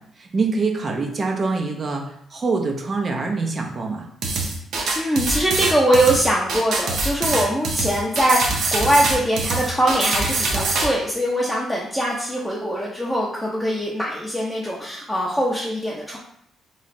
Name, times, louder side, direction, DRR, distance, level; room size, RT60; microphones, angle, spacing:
voice 1, 0.2-2.1 2.3-4.1, right 4 dB, 40° right, 2 dB, 0.6 m, -24 dB
sound 1, 4.2-10.9, right 3 dB, 75° right, 0.8 m, -24 dB
voice 2, 4.9-16.2, right 1 dB, 5° left, -5 dB, 0.6 m, -22 dB
3.1 x 2.4 x 4.1 m, 0.70 s
cardioid pair, 90°, 0 cm